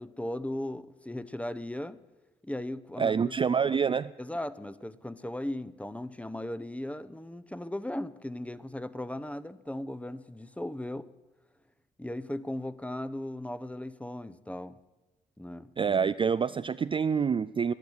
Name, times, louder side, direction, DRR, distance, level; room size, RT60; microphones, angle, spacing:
voice 1, 0.0-2.0 2.4-3.3 4.2-11.1 12.0-14.8 15.4-15.9, left 1 dB, 5° left, 15 dB, 0.7 m, -37 dB
voice 2, 3.0-4.1 15.8-17.7, right 6 dB, 25° right, 13 dB, 0.3 m, -27 dB
12.0 x 10.5 x 6.4 m, 1.1 s
hypercardioid pair, 50°, 20 cm